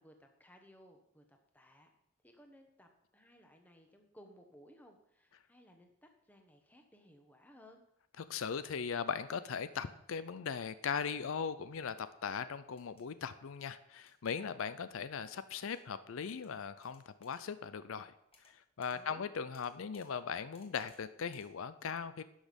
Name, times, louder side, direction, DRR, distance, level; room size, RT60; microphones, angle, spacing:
voice 1, 0.0-1.9 2.2-7.8 18.9-19.3, equal, 10° left, 3 dB, 1.1 m, -60 dB
voice 2, 8.2-18.1 18.4-22.2, left 6 dB, 75° left, 13 dB, 0.5 m, -39 dB
sound 1, 12.8-13.0 14.1-14.3 15.5-15.8 16.3-16.5 16.8-17.4 18.3-18.5 18.8-19.0 19.5-20.1 20.5-21.0 21.3-21.5, left 3 dB, 25° left, 1.6 m, -65 dB
11.5 x 6.3 x 5.2 m, 0.77 s
head